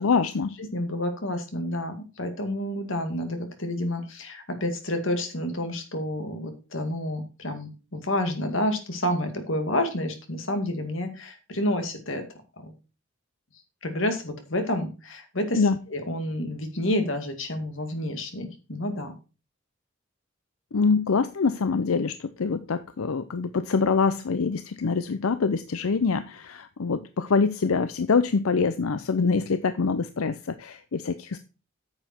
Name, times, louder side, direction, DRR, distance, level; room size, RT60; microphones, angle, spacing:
voice 1, 0.0-0.5 15.5-15.8 20.7-31.4, left 4 dB, 90° left, 12 dB, 0.6 m, -25 dB
voice 2, 0.7-12.2 12.6-12.7 13.8-15.6 15.9-19.1, left 1 dB, 65° left, 6 dB, 2.2 m, -29 dB
9.5 x 6.9 x 4.5 m, 0.32 s
head